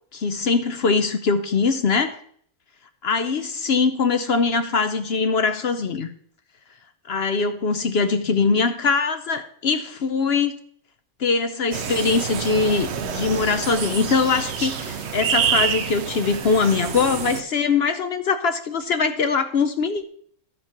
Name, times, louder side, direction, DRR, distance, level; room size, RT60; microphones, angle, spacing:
voice 1, 0.1-2.2 3.0-6.1 7.1-10.5 11.2-20.0, left 4 dB, 60° left, 9 dB, 0.7 m, -22 dB
sound 1, 11.7-17.4, right 7 dB, 55° right, 0.9 m, -27 dB
12.5 x 5.1 x 5.8 m, 0.62 s
omnidirectional pair, 1.6 m